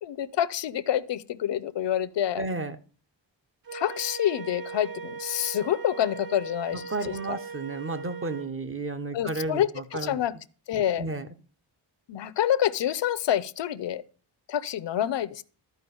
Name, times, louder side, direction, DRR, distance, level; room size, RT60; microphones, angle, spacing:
voice 1, 0.0-2.5 3.7-7.4 9.1-10.4 10.7-11.1 12.1-14.0 14.5-15.4, left 11 dB, 65° left, 0.7 m, -27 dB
voice 2, 2.4-2.8 6.7-10.2 11.0-11.3, right 3 dB, 25° right, 0.8 m, -32 dB
Wind instrument woodwind instrument, 3.7-8.5, right 5 dB, 45° right, 1.4 m, -39 dB
13.0 x 4.9 x 7.0 m
wide cardioid pair, 155°, 47 cm